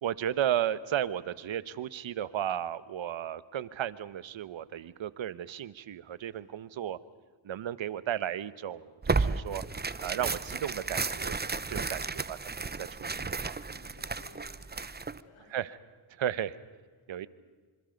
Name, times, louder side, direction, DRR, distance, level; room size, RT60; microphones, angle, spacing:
voice 1, 0.0-7.0 7.4-9.6 10.0-11.4 11.7-13.6 15.5-15.7 16.1-16.6 17.1-17.3, right 10 dB, 70° right, 16 dB, 1.2 m, -34 dB
voice 2, 2.7-3.1 6.3-6.9 13.5-15.6 16.3-16.4 17.0-17.3, left 4 dB, 85° left, 2 dB, 6.5 m, -60 dB
Tearing, 9.0-15.2, right 4 dB, 20° right, 1.0 m, -33 dB
27.0 x 26.5 x 5.3 m, 1.5 s
cardioid pair, 65°, 49 cm